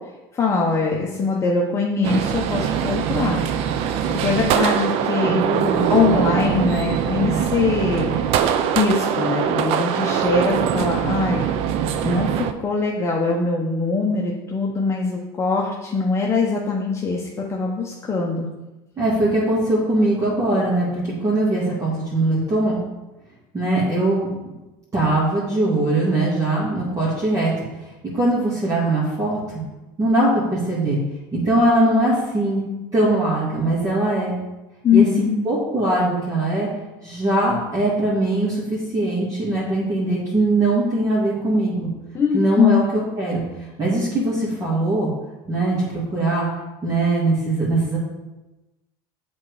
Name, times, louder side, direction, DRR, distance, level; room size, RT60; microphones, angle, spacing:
voice 1, 0.3-3.4 4.1-5.4 5.9-8.2 8.7-11.5 12.0-18.5 34.8-35.4 42.1-42.8, left 4 dB, 25° left, -2 dB, 1.0 m, -22 dB
sound 1, 2.0-12.5, right 8 dB, 60° right, 0.6 m, -22 dB
voice 2, 5.2-6.1 19.0-22.8 23.5-24.3 24.9-27.5 28.1-29.4 30.0-31.0 31.3-32.6 32.9-34.4 34.9-35.1 35.5-36.7 37.0-41.9 42.3-43.4 43.8-45.1 45.5-46.5 46.8-48.0, right 2 dB, 25° right, -8 dB, 2.2 m, -21 dB
7.5 x 4.3 x 4.9 m, 1.1 s
supercardioid pair, 115°, 12 cm